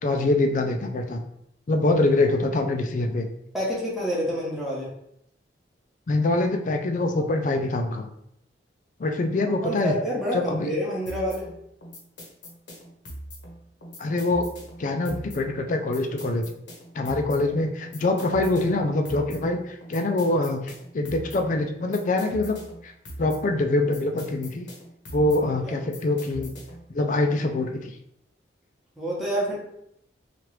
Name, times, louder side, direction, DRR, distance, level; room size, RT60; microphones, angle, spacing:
voice 1, 0.0-1.2 1.7-3.3 6.1-8.1 9.0-9.9 10.3-10.7 14.0-14.5 14.8-16.4 16.9-22.6 22.8-22.9 23.2-24.7 25.1-26.5 26.9-27.9, left 2 dB, 45° left, 4 dB, 0.4 m, -24 dB
voice 2, 3.5-4.9 9.6-11.5 25.6-25.8 29.0-29.5, equal, ahead, -6 dB, 0.9 m, -28 dB
sound 1, 11.1-26.9, equal, 90° left, 0.9 m, -42 dB
2.9 x 2.4 x 3.1 m, 0.73 s
head